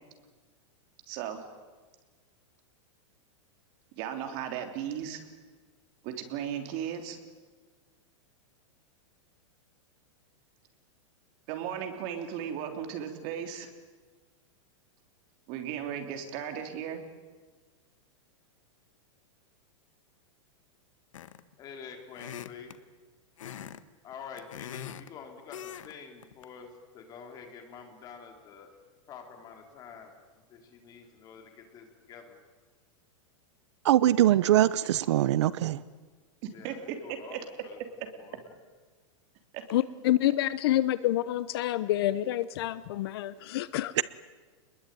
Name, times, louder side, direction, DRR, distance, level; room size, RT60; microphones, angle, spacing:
voice 1, 1.1-1.4 3.9-5.2 6.0-7.2 11.5-13.7 15.5-17.0 36.4-37.4 39.5-39.6, right 9 dB, 40° right, 3.3 m, -36 dB
sound 1, 21.1-21.5 22.1-22.8 23.4-23.8 24.1-25.1 25.5-25.9 26.2-26.4, left 9 dB, 90° left, 1.5 m, -42 dB
voice 2, 21.6-22.8 24.0-26.7 26.9-28.7 29.1-30.2 30.5-32.4 36.5-37.8 38.1-38.4, left 6 dB, 25° left, 3.9 m, -47 dB
voice 3, 33.8-35.8 44.0-44.1, right 13 dB, 65° right, 0.9 m, -22 dB
voice 4, 39.7-43.9, left 14 dB, 50° left, 1.0 m, -28 dB
28.0 x 21.5 x 9.4 m
supercardioid pair, 165°, 16 cm